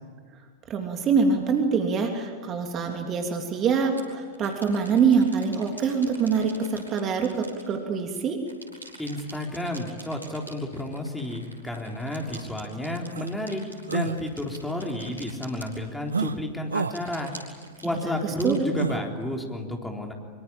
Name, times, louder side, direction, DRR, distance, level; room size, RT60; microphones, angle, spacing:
voice 1, 0.7-8.4 18.0-18.6, right 5 dB, 30° right, 3 dB, 3.1 m, -25 dB
sound 1, 2.9-3.0 3.8-8.2 8.5-16.3 16.7-19.2, right 1 dB, 85° left, 5.4 m, -47 dB
voice 2, 9.0-13.6 13.9-17.3 17.8-20.1, left 1 dB, 5° left, 1 dB, 3.9 m, -31 dB
sound 2, 12.3-12.4 13.1-13.3 13.9-14.2 16.1-16.4 16.7-17.0 18.8-19.0, right 5 dB, 75° right, 0.9 m, -28 dB
25.0 x 24.5 x 9.0 m, 1.5 s
figure-of-eight pair, 90°, 0 cm